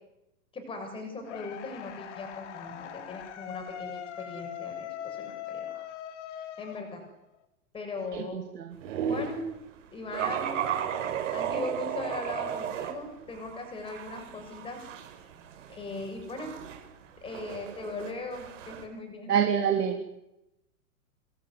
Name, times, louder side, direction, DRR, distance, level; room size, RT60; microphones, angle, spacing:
voice 1, 0.5-5.9 6.3-7.0 7.7-8.4 9.1-9.5 9.9-10.6 11.3-14.8 15.7-16.5 17.2-19.3, left 3 dB, 10° left, 4 dB, 7.1 m, -39 dB
sound 1, 1.3-7.4, left 10 dB, 45° left, 3.8 m, -41 dB
voice 2, 8.1-8.7 19.3-20.0, right 8 dB, 80° right, 4 dB, 3.8 m, -27 dB
sound 2, 8.8-9.4 10.1-12.9 13.3-18.8, right 8 dB, 50° right, 5.2 m, -34 dB
26.0 x 20.5 x 9.9 m, 0.89 s
hypercardioid pair, 160°, 46 cm